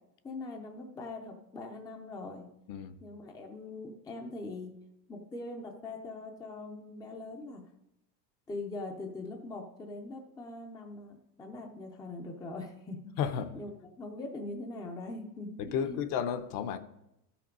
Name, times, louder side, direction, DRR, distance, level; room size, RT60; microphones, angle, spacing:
voice 1, 0.2-2.5 3.0-4.7 5.1-7.6 8.5-13.7 14.0-16.0, left 2 dB, 10° left, 0.5 m, -42 dB
voice 2, 13.2-13.6 15.6-16.8, left 8 dB, 40° left, 0.8 m, -32 dB
13.0 x 5.9 x 5.2 m
supercardioid pair, 150°, 50 cm